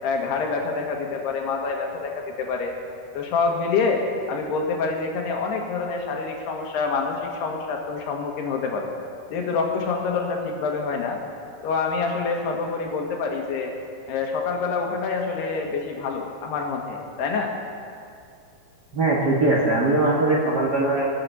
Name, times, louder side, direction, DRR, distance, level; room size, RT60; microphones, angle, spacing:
voice 1, 0.0-2.7 3.1-8.9 9.3-11.2 11.6-13.7 14.1-17.5, left 4 dB, 75° left, 1 dB, 3.5 m, -26 dB
voice 2, 18.9-21.1, right 2 dB, 85° right, -3 dB, 0.9 m, -21 dB
24.0 x 8.5 x 6.9 m, 2.4 s
omnidirectional pair, 4.9 m